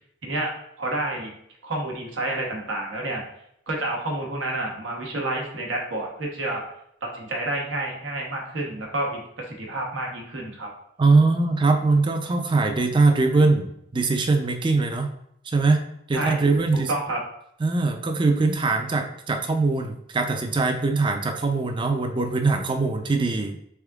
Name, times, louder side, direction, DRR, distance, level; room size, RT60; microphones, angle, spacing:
voice 1, 0.8-1.3 1.6-3.3 3.7-6.6 7.0-10.7 16.1-16.4 16.7-17.2, right 1 dB, 90° right, -1 dB, 1.1 m, -29 dB
voice 2, 11.0-15.1 15.5-15.8 16.1-16.9 17.6-23.7, right 3 dB, 25° right, 5 dB, 0.4 m, -22 dB
3.6 x 3.5 x 3.5 m, 0.75 s
head